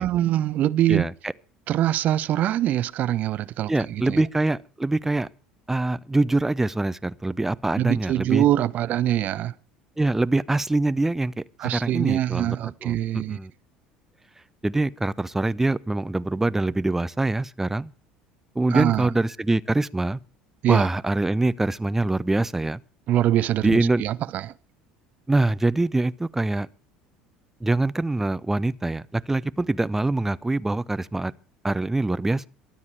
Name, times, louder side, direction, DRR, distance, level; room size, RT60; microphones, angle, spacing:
voice 1, 0.0-1.1 1.7-4.2 7.8-9.5 11.6-13.4 18.7-19.1 20.6-20.9 23.1-24.5, right 12 dB, 45° right, 0.9 m, -23 dB
voice 2, 0.9-1.3 3.7-5.3 5.7-8.4 10.0-11.3 11.7-12.6 12.8-13.0 13.3-13.5 14.6-17.9 18.6-20.2 20.7-22.8 23.6-24.0 25.3-26.7 27.6-31.3 31.6-32.5, right 2 dB, 10° right, 0.7 m, -24 dB
23.0 x 9.7 x 4.8 m
figure-of-eight pair, 65°, 4 cm